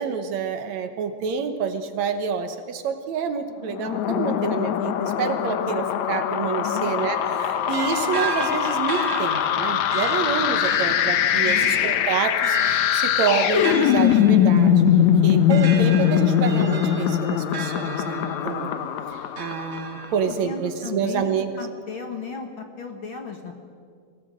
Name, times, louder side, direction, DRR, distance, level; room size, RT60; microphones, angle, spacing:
voice 1, 0.0-14.9 15.2-18.7 19.1-21.6, right 6 dB, 65° right, 8 dB, 2.2 m, -28 dB
sound 1, 3.7-20.1, left 9 dB, 70° left, 2.2 m, -21 dB
voice 2, 6.6-7.0 11.4-11.7 20.1-23.5, left 5 dB, 50° left, 4 dB, 1.9 m, -35 dB
sound 2, 7.0-18.7 19.1-20.1, right 6 dB, 40° right, 1.2 m, -36 dB
24.0 x 17.0 x 7.7 m, 2.1 s
omnidirectional pair, 3.6 m